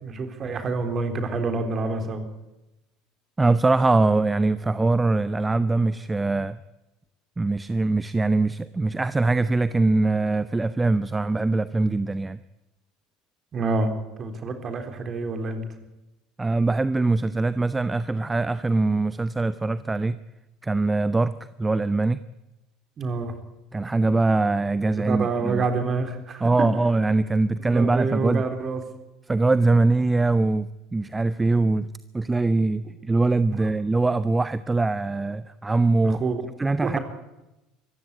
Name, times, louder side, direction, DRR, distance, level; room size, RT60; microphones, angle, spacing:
voice 1, 0.0-2.2 13.5-13.9 14.2-15.6 23.0-23.3 25.1-26.5 27.6-28.8 36.0-36.4 36.8-37.0, right 3 dB, 35° right, 7 dB, 3.9 m, -27 dB
voice 2, 3.4-6.6 7.4-12.4 16.4-20.2 20.6-22.2 23.7-25.6 26.4-28.5 29.3-31.9 32.1-36.2 36.6-37.0, right 3 dB, 15° right, 15 dB, 0.7 m, -22 dB
24.0 x 15.0 x 9.8 m, 0.99 s
figure-of-eight pair, 65°, 0 cm